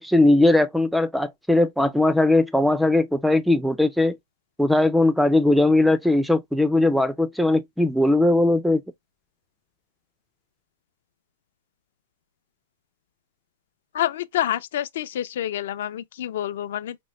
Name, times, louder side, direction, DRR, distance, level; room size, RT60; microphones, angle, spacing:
voice 1, 0.0-4.2 4.6-8.8, left 2 dB, ahead, 0.3 m, -19 dB
voice 2, 13.9-17.0, left 12 dB, 65° left, 0.4 m, -27 dB
5.1 x 2.1 x 3.0 m
supercardioid pair, 160°, 0 cm